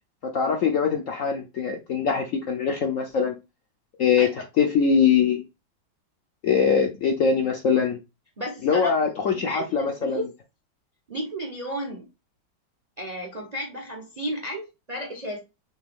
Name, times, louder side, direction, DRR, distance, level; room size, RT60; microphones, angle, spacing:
voice 1, 0.3-3.3 4.0-4.3 4.6-5.4 6.4-8.0 8.6-10.2, left 6 dB, 65° left, 0.8 m, -22 dB
voice 2, 8.4-8.9 9.3-10.3 11.1-12.1 13.0-15.4, equal, 35° right, 0.6 m, -33 dB
5.9 x 2.4 x 3.4 m
omnidirectional pair, 2.0 m